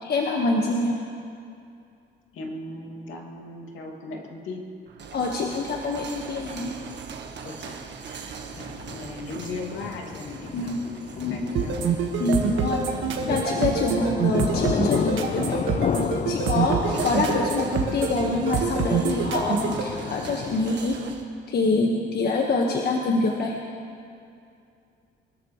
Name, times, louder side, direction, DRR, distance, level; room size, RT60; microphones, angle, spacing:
voice 1, 0.0-1.0 5.1-6.7 10.5-10.8 11.2-11.5 12.2-12.9 13.3-15.6 16.3-21.0 21.5-23.6, left 3 dB, 55° left, -1 dB, 1.6 m, -25 dB
voice 2, 2.3-4.6 7.4-11.8 16.4-16.7, left 2 dB, 75° left, 0 dB, 2.7 m, -38 dB
sound 1, 4.9-21.3, right 6 dB, 65° right, 1.5 m, -41 dB
sound 2, 8.5-20.7, left 8 dB, 40° left, 0.4 m, -32 dB
sound 3, 11.6-19.8, right 6 dB, 80° right, 1.7 m, -26 dB
24.5 x 13.5 x 3.3 m, 2.4 s
cardioid pair, 90°, 20 cm